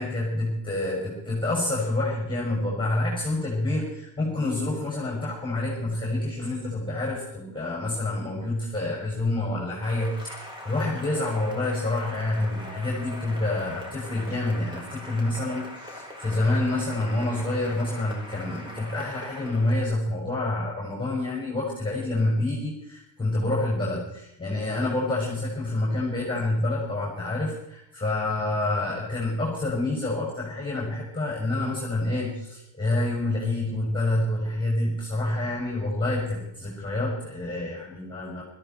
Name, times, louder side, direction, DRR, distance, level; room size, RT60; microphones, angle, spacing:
voice 1, 0.0-38.4, left 2 dB, 10° left, -3 dB, 6.2 m, -28 dB
Cheering / Applause, 9.8-19.9, left 1 dB, 10° right, 4.9 m, -42 dB
17.0 x 14.5 x 4.6 m, 0.83 s
supercardioid pair, 95°, 47 cm